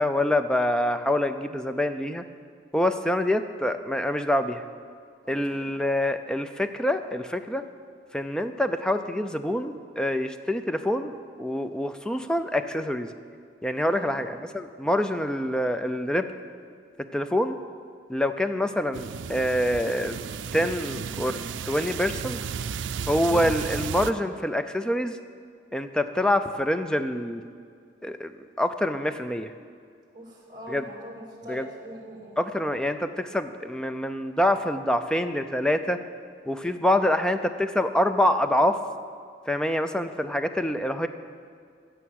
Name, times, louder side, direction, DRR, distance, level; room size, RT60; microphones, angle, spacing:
voice 1, 0.0-2.2 2.7-4.6 5.3-7.6 8.1-13.1 13.6-16.3 17.1-17.6 18.1-20.2 20.5-22.4 23.1-25.2 25.7-27.4 28.0-29.5 30.7-30.8 31.5-31.7 32.4-36.0 36.5-38.8 39.5-41.1, left 1 dB, 5° left, 9 dB, 0.4 m, -26 dB
voice 2, 5.2-5.7 13.9-14.2 23.2-23.5 30.1-32.4, equal, 25° right, -1 dB, 2.6 m, -42 dB
sound 1, 18.9-24.1, right 6 dB, 90° right, 0.4 m, -34 dB
15.5 x 6.9 x 6.3 m, 2.2 s
head